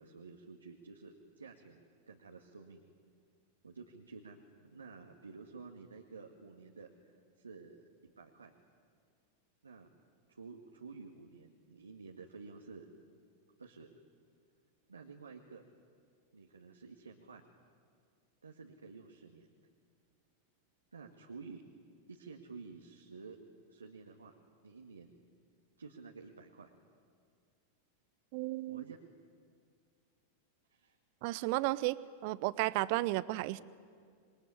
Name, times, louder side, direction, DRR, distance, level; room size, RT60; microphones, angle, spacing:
voice 1, 0.0-2.8 3.6-7.1 7.4-8.5 9.6-9.9 10.3-12.9 13.6-13.9 14.9-15.6 16.3-17.4 18.4-19.5 20.9-21.6 22.1-23.4 23.7-24.3 24.6-25.1 25.8-26.7 28.7-29.0 30.7-31.0, right 4 dB, 75° right, 1 dB, 1.9 m, -51 dB
voice 2, 28.3-28.8 31.2-33.6, right 19 dB, 45° right, 18 dB, 0.8 m, -33 dB
27.5 x 22.0 x 9.8 m, 2.1 s
figure-of-eight pair, 90°, 0 cm